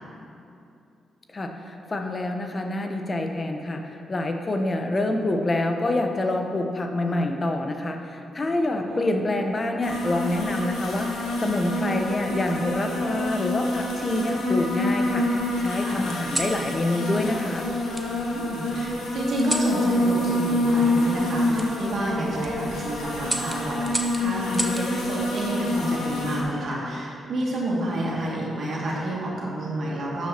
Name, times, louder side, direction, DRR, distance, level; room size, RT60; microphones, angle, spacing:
voice 1, 1.3-15.2 15.6-17.7, left 2 dB, 40° left, 4 dB, 0.9 m, -27 dB
sound 1, 8.7-9.9 10.9-11.3 12.6-13.3 14.0-14.9 16.1-16.6 17.9-18.1 19.4-19.8 21.5-21.7 22.2-22.5 23.2-24.9 26.4-26.8, right 1 dB, 15° right, 0.9 m, -34 dB
sound 2, 9.8-26.4, left 1 dB, 85° left, 1.3 m, -27 dB
voice 2, 18.3-30.3, right 1 dB, 65° right, -5 dB, 2.3 m, -30 dB
12.5 x 7.5 x 2.9 m, 2.7 s
hypercardioid pair, 45°, 0 cm